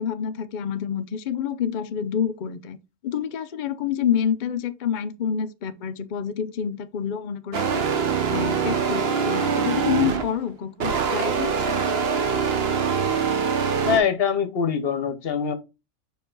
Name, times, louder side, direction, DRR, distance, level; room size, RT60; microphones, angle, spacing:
voice 1, 0.0-2.8 3.0-7.9 8.3-11.8, left 8 dB, 80° left, 0.4 m, -28 dB
sound 1, 7.5-10.4 10.8-14.0, right 6 dB, 50° right, 1.0 m, -24 dB
voice 2, 13.9-15.5, left 7 dB, 50° left, 0.9 m, -23 dB
5.4 x 4.7 x 3.7 m
omnidirectional pair, 1.5 m